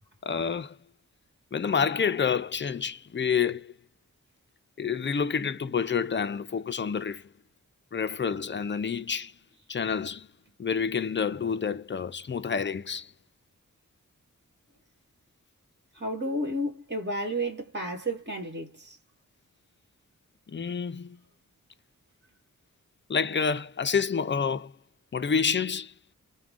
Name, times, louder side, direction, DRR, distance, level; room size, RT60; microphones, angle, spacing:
voice 1, 0.2-0.8 1.5-3.7 4.8-7.3 7.9-9.3 9.7-10.3 10.6-13.1 20.5-21.2 23.1-24.7 25.1-25.9, left 6 dB, 35° left, 0.5 m, -28 dB
voice 2, 15.9-19.0, right 1 dB, 35° right, 1.7 m, -32 dB
3.6 x 2.3 x 3.5 m
wide cardioid pair, 95°, 32 cm